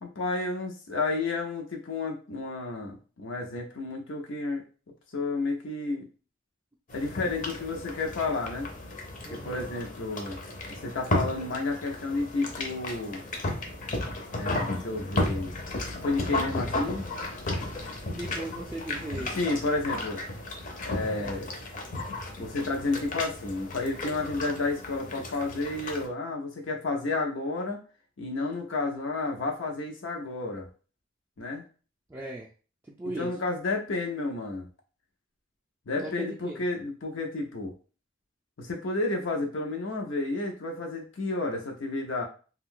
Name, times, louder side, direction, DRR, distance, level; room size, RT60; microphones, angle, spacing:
voice 1, 0.0-4.6 5.1-6.1 6.9-8.7 9.3-10.4 10.7-13.2 14.4-15.6 16.0-17.0 19.2-20.2 20.8-21.5 22.4-27.8 28.2-30.7 31.4-31.6 33.2-34.7 35.9-37.7 38.6-42.3, left 3 dB, 80° left, 2 dB, 0.6 m, -31 dB
sound 1, 6.9-26.1, left 2 dB, 45° left, 0.6 m, -34 dB
voice 2, 9.3-9.7 18.1-19.3 21.1-21.3 32.1-32.5 32.8-33.3 35.9-36.6, right 1 dB, 10° right, -3 dB, 0.3 m, -38 dB
2.6 x 2.3 x 3.6 m, 0.37 s
head